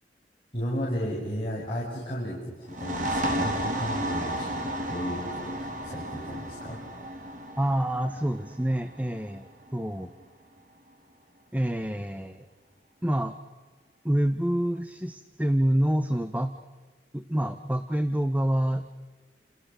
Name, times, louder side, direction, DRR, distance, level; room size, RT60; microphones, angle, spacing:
voice 1, 0.5-6.8, equal, 30° left, -6 dB, 6.6 m, -34 dB
sound 1, 2.6-10.0, right 1 dB, 50° right, 3.8 m, -33 dB
voice 2, 7.6-10.1 11.5-12.5 13.0-13.3 14.0-16.5 17.1-19.0, right 1 dB, 10° right, 9 dB, 1.0 m, -27 dB
29.0 x 28.5 x 6.9 m, 1.4 s
head